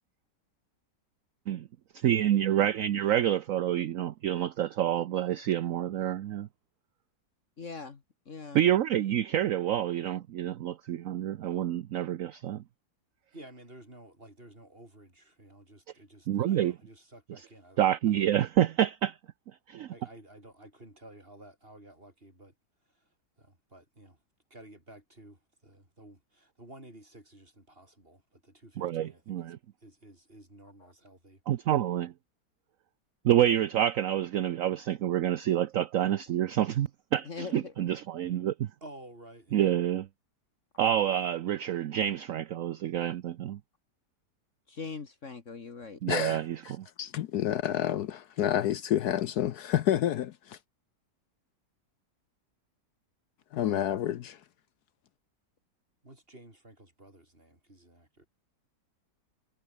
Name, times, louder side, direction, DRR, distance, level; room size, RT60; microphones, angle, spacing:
voice 1, 2.0-6.5 8.5-12.6 16.3-16.7 17.8-19.2 19.7-19.9 28.8-29.6 31.5-32.1 33.2-38.7 39.5-40.1 40.8-43.6 46.0-46.9, right 11 dB, 60° right, 1.0 m, -28 dB
voice 2, 7.6-8.0 8.3-8.6 37.3-37.7 44.7-46.4, left 4 dB, 45° left, 1.9 m, -41 dB
voice 3, 13.3-18.4 19.9-22.5 22.8-24.2 24.5-29.6 29.8-31.4 38.8-39.7 56.0-58.3, right 1 dB, 30° right, 6.9 m, -53 dB
voice 4, 46.1-46.4 47.0-50.6 53.5-54.4, left 11 dB, 70° left, 1.2 m, -29 dB
omnidirectional pair, 1.8 m